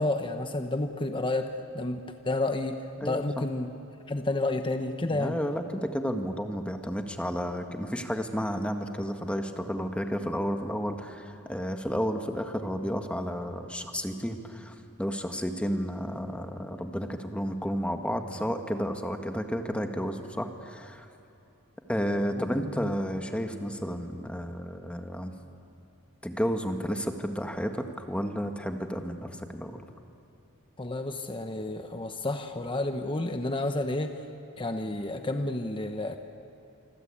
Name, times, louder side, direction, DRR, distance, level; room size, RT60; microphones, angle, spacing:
voice 1, 0.0-1.5 1.7-3.7 4.1-5.4 22.6-22.9 30.8-34.2 34.6-36.2, left 2 dB, 25° left, 6 dB, 1.1 m, -30 dB
voice 2, 3.0-3.4 5.1-21.1 21.9-25.3 26.2-29.8, equal, 5° left, 5 dB, 1.6 m, -32 dB
26.5 x 24.5 x 8.7 m, 2.8 s
head